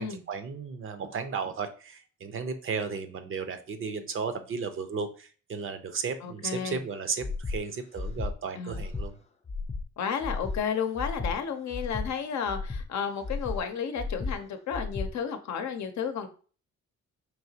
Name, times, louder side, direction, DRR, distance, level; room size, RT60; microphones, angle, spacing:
voice 1, 0.0-9.2, right 5 dB, 45° right, 9 dB, 0.6 m, -34 dB
voice 2, 6.2-6.8 8.6-8.8 10.0-16.3, left 7 dB, 65° left, 7 dB, 0.7 m, -32 dB
Breathing, 7.2-7.6 7.9-8.3 8.7-9.1 9.4-9.8 10.2-10.6 11.0-11.3 11.7-12.1 12.5-12.8 13.2-13.6 14.0-14.3 14.7-15.1, left 4 dB, 20° left, 0.5 m, -33 dB
4.5 x 2.9 x 2.8 m, 0.39 s
cardioid pair, 90°, 30 cm